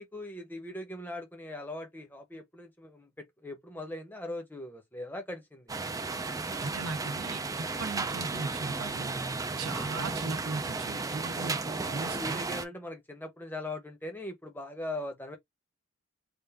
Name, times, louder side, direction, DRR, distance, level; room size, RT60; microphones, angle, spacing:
voice 1, 0.0-5.7 9.7-10.1 12.0-15.4, left 1 dB, 10° left, 0.8 m, -40 dB
sound 1, 5.7-12.6, right 3 dB, 15° right, 0.3 m, -34 dB
voice 2, 6.6-9.1 9.6-12.4, right 3 dB, 85° right, 0.8 m, -38 dB
3.5 x 2.5 x 3.4 m
head